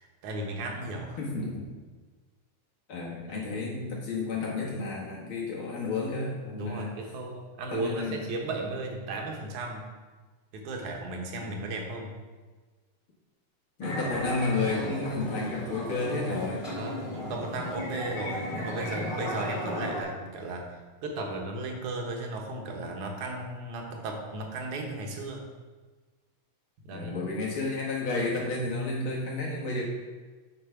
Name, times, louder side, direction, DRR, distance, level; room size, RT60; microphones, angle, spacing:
voice 1, 0.0-1.2 3.3-3.7 6.6-9.9 10.5-12.2 16.7-25.5 26.8-27.2, right 2 dB, 80° right, 1 dB, 2.6 m, -35 dB
voice 2, 1.2-1.7 2.9-6.9 7.7-8.2 11.3-11.6 13.8-16.6 26.9-29.9, left 3 dB, 50° left, -4 dB, 2.3 m, -31 dB
sound 1, 13.8-20.0, left 1 dB, 20° left, 1.8 m, -35 dB
8.4 x 5.2 x 5.7 m, 1.3 s
omnidirectional pair, 3.4 m